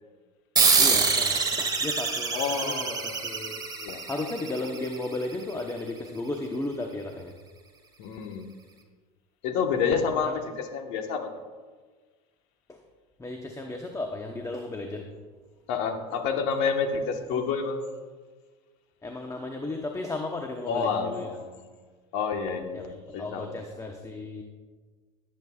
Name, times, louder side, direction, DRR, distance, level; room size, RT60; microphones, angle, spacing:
sound 1, 0.6-5.5, right 5 dB, 20° right, 1.7 m, -26 dB
voice 1, 0.8-3.6 4.1-7.4 10.3-10.4 12.7-12.8 13.2-15.1 19.0-21.3 22.7-24.4, left 2 dB, 15° left, 3 dB, 1.0 m, -34 dB
voice 2, 2.3-3.3 3.8-4.0 8.0-8.5 9.4-11.3 15.7-17.8 20.7-21.6 22.1-23.6, left 5 dB, 60° left, 5 dB, 1.3 m, -29 dB
17.5 x 8.3 x 2.4 m, 1.4 s
hypercardioid pair, 95°, 21 cm